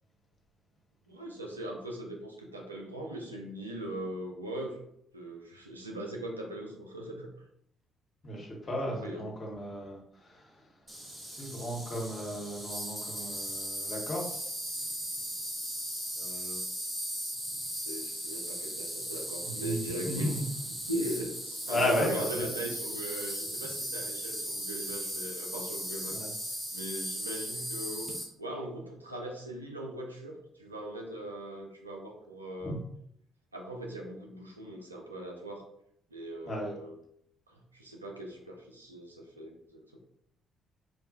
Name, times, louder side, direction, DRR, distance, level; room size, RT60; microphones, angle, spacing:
voice 1, 1.1-4.8 5.1-7.3 8.8-9.3 16.2-16.6 17.7-20.4 20.8-26.2 26.7-32.8 33.5-35.6 36.1-37.0 37.5-40.0, right 1 dB, 90° right, 0 dB, 0.4 m, -40 dB
voice 2, 8.2-10.7 11.2-14.5 19.4-20.5 21.7-22.7 26.1-26.3 32.6-32.8 36.5-36.7, left 1 dB, 40° left, -2 dB, 1.1 m, -34 dB
Insect, 10.9-28.2, equal, 10° right, 1.0 m, -37 dB
3.2 x 2.3 x 2.6 m, 0.73 s
figure-of-eight pair, 45°, 0 cm